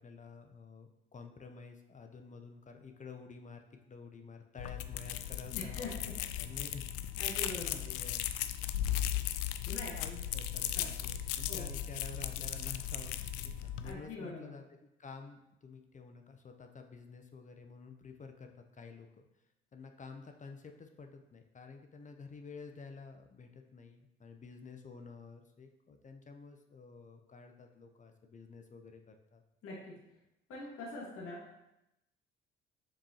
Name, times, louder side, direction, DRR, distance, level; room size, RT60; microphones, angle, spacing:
voice 1, 0.0-6.9 7.3-8.3 9.6-19.2 19.7-29.4, left 4 dB, 25° left, 5 dB, 0.7 m, -51 dB
sound 1, 4.6-13.9, left 11 dB, 65° left, 0.5 m, -37 dB
voice 2, 5.5-6.1 7.2-7.8 9.7-9.9 10.7-10.9 11.5-11.7 13.8-14.5 29.6-30.0 30.5-31.6, left 2 dB, 50° left, -3 dB, 1.6 m, -43 dB
7.4 x 4.8 x 2.9 m, 0.89 s
figure-of-eight pair, 50°, 29 cm